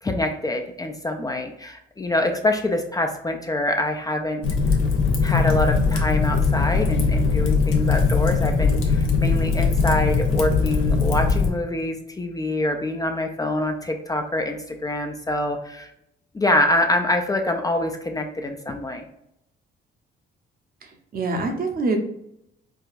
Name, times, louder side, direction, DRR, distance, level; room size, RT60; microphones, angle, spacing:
voice 1, 0.0-4.4 4.7-4.8 5.2-15.9 16.3-19.1, left 1 dB, 20° left, 4 dB, 0.4 m, -25 dB
Fire, 4.4-11.5, left 4 dB, 85° left, 0.7 m, -20 dB
voice 2, 20.8-22.0, right 3 dB, 50° right, 4 dB, 0.8 m, -25 dB
4.6 x 2.2 x 2.5 m, 0.78 s
cardioid pair, 90°, 20 cm